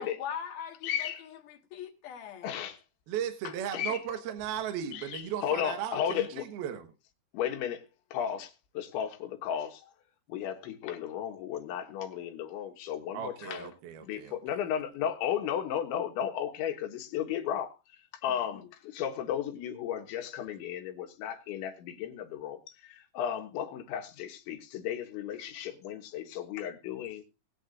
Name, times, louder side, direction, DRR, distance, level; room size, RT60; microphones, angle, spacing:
voice 1, 0.0-2.6 18.3-18.7, left 8 dB, 60° left, 3.3 m, -42 dB
voice 2, 0.8-1.3 2.4-2.8 3.7-4.0 4.9-6.5 7.3-7.8 8.1-9.8 10.3-13.7 14.0-17.7 18.2-27.3, left 9 dB, 90° left, 3.8 m, -34 dB
voice 3, 3.1-6.9 13.1-14.4, right 9 dB, 70° right, 2.8 m, -36 dB
21.0 x 9.2 x 2.6 m
omnidirectional pair, 5.2 m